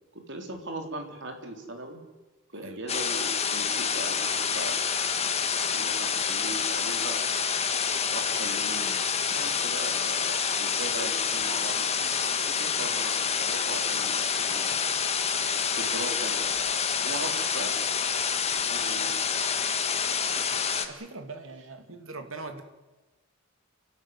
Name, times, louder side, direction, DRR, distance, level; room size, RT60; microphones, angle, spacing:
voice 1, 0.1-2.0 2.5-4.8 5.6-7.2 8.1-14.7 15.7-16.5 17.0-17.9 18.7-19.2, right 2 dB, 60° right, 4 dB, 3.9 m, -39 dB
sound 1, 2.9-20.9, left 6 dB, 30° left, 1.6 m, -28 dB
voice 2, 20.8-22.6, right 3 dB, 80° right, 7 dB, 2.5 m, -41 dB
30.0 x 12.0 x 9.7 m, 1.1 s
head